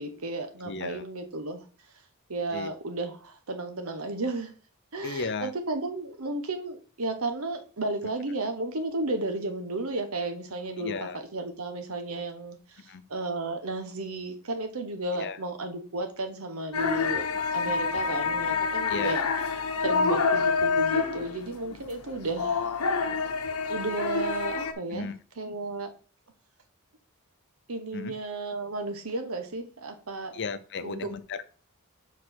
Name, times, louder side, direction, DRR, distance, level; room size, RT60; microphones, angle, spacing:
voice 1, 0.0-1.6 2.3-4.5 4.9-17.3 17.5-19.2 19.8-22.7 23.7-25.1 25.4-25.9 27.7-30.4 30.8-31.1, right 2 dB, 70° right, 7 dB, 1.2 m, -33 dB
voice 2, 0.6-1.0 2.5-2.7 5.0-5.5 10.8-11.2 12.9-13.0 15.1-15.4 17.6-17.7 18.9-19.2 23.0-23.2 24.9-25.1 27.9-28.1 30.3-31.4, left 4 dB, 55° left, 12 dB, 0.6 m, -35 dB
sound 1, 16.7-24.7, left 5 dB, 85° left, 1.0 m, -27 dB
4.8 x 4.8 x 6.1 m, 0.39 s
head